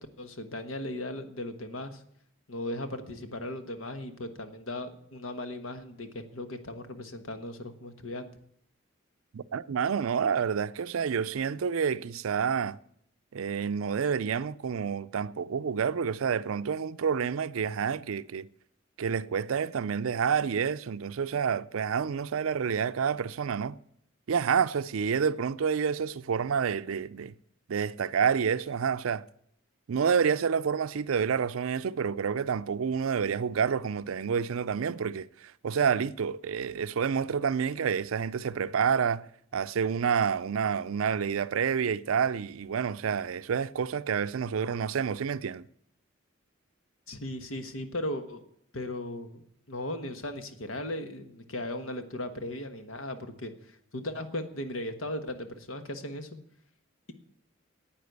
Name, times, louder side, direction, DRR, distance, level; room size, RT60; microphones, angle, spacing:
voice 1, 0.0-2.0 2.5-8.3 47.1-48.4 48.7-56.4, left 1 dB, 80° left, 1.4 m, -37 dB
voice 2, 9.3-12.8 13.3-18.5 19.0-23.8 24.3-27.3 27.7-29.2 29.9-39.3 39.5-45.7, right 6 dB, 90° right, 0.4 m, -28 dB
10.5 x 8.8 x 8.0 m
head